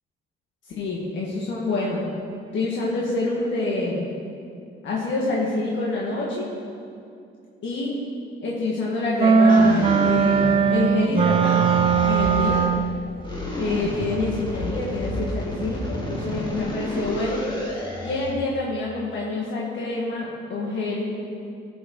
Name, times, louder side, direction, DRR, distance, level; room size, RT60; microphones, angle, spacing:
voice 1, 0.7-2.0 2.5-4.1 4.8-6.5 7.6-7.9 8.4-12.6 13.5-17.4 18.0-21.1, left 2 dB, 70° left, -5 dB, 1.7 m, -27 dB
sound 1, 9.2-13.0, right 5 dB, 30° right, 0.4 m, -19 dB
sound 2, 9.5-10.8 11.1-12.8 13.2-18.4, left 1 dB, 25° left, 2.2 m, -30 dB
14.5 x 6.9 x 3.9 m, 2.5 s
cardioid pair, 90°, 20 cm